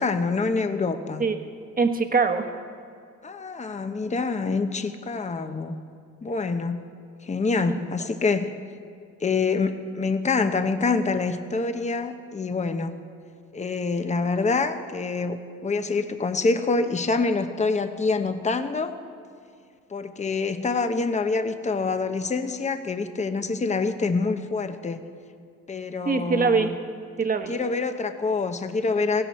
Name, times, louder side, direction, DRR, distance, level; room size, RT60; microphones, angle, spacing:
voice 1, 0.0-1.3 3.2-5.8 6.2-6.8 7.2-8.5 9.2-13.0 13.5-19.0 19.9-25.0 25.7-26.8 27.5-29.2, left 4 dB, 25° left, 8 dB, 0.9 m, -26 dB
voice 2, 1.8-2.5 7.7-8.1 26.0-26.8 27.2-27.6, right 4 dB, 30° right, 6 dB, 1.3 m, -23 dB
17.0 x 16.0 x 4.3 m, 2.3 s
cardioid pair, 90°, 30 cm